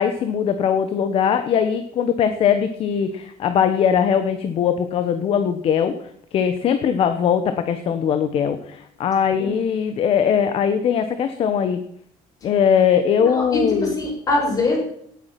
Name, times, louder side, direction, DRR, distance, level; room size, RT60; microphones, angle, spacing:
voice 1, 0.0-5.9 6.3-11.8 12.4-13.9, left 8 dB, 40° left, 9 dB, 1.1 m, -20 dB
voice 2, 13.3-14.8, left 2 dB, 25° left, 0 dB, 5.5 m, -22 dB
18.0 x 8.7 x 5.9 m, 0.70 s
cardioid pair, 165°, 14 cm